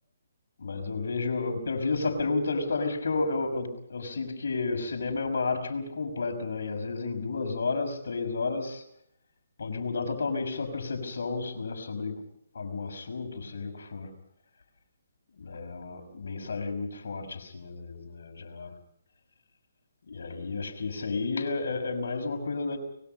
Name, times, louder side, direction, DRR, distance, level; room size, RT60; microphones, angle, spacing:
voice 1, 0.6-8.8 9.6-12.2 12.5-14.1 15.4-18.7 20.1-22.8, left 3 dB, 70° left, 5 dB, 6.0 m, -31 dB
24.5 x 22.0 x 5.6 m, 0.73 s
figure-of-eight pair, 145°, 0 cm